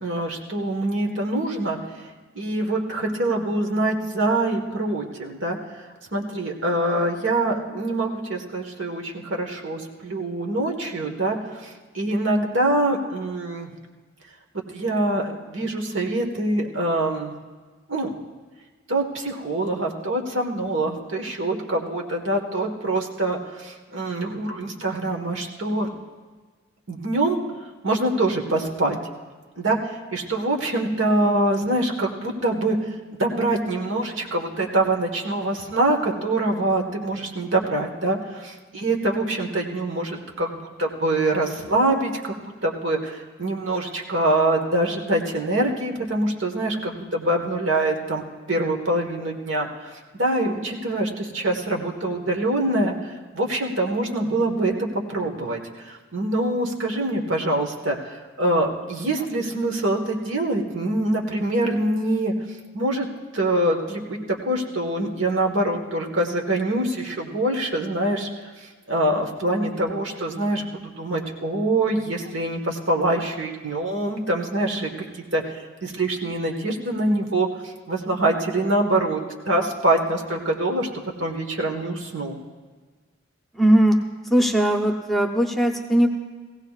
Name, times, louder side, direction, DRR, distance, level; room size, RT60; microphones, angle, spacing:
voice 1, 0.0-1.8 2.3-5.6 6.1-11.4 11.6-13.7 14.5-17.3 17.9-18.1 18.9-25.9 26.9-27.4 27.8-29.0 29.6-32.8 33.2-42.3 42.6-48.2 48.5-49.7 50.2-62.3 62.7-63.1 63.3-68.3 68.9-80.9 81.2-82.4, right 1 dB, 75° right, 1 dB, 1.4 m, -24 dB
voice 2, 83.5-84.0 84.2-86.1, right 1 dB, ahead, 3 dB, 0.7 m, -19 dB
19.0 x 16.0 x 2.4 m, 1.4 s
head